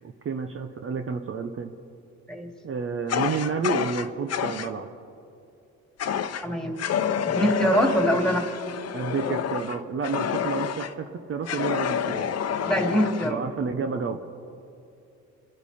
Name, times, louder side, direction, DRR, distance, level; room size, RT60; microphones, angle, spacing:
voice 1, 0.0-1.7 2.6-4.9 8.9-12.3 13.2-14.2, right 5 dB, 45° right, 6 dB, 0.9 m, -30 dB
Fire, 3.1-4.7 6.0-6.4 6.8-10.9 11.5-13.3, left 8 dB, 55° left, 0.9 m, -28 dB
voice 2, 6.4-6.8 7.3-8.5 12.6-13.4, equal, ahead, 2 dB, 2.5 m, -24 dB
27.0 x 11.0 x 4.3 m, 2.7 s
cardioid pair, 90°, 30 cm